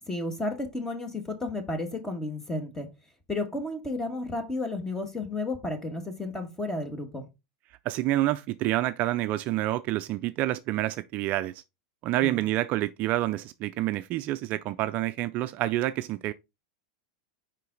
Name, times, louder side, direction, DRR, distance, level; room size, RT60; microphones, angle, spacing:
voice 1, 0.1-2.9 3.3-7.3 12.2-12.4, left 2 dB, 10° left, 1.5 m, -32 dB
voice 2, 7.9-11.6 12.0-16.3, right 15 dB, 45° right, 0.4 m, -28 dB
5.5 x 5.1 x 3.8 m
supercardioid pair, 125°, 4 cm